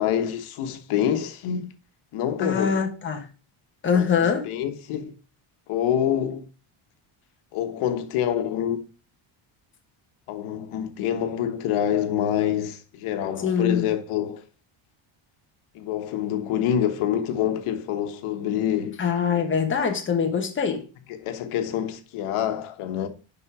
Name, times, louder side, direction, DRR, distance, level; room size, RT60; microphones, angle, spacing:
voice 1, 0.0-1.7 2.1-2.8 3.9-5.1 5.7-6.5 7.5-8.8 10.3-14.4 15.7-19.0 21.2-23.1, left 10 dB, 85° left, 1.3 m, -26 dB
voice 2, 2.4-3.3 3.8-4.5 13.4-13.8 19.0-20.8, left 6 dB, 25° left, 1.3 m, -23 dB
11.0 x 3.9 x 4.8 m
cardioid pair, 170°, 50 cm